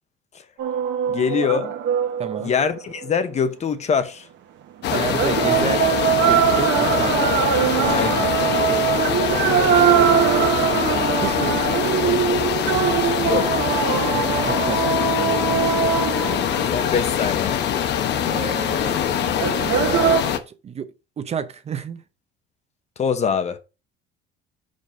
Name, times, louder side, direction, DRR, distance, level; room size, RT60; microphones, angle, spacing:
sound 1, 0.6-3.1 4.9-17.2 19.4-20.2, right 8 dB, 65° right, 1.3 m, -21 dB
voice 1, 1.1-1.7 2.4-4.3 7.9-8.3 13.2-13.6 16.2-17.6 23.0-23.6, left 6 dB, 35° left, 0.8 m, -24 dB
voice 2, 2.2-2.5 4.9-6.0 6.3-7.2 7.8-11.7 14.5-15.7 18.1-19.5 20.2-22.0, right 7 dB, 30° right, 0.6 m, -32 dB
sound 2, 4.8-20.4, left 9 dB, 55° left, 0.9 m, -23 dB
5.3 x 5.2 x 5.2 m
cardioid pair, 135°, 21 cm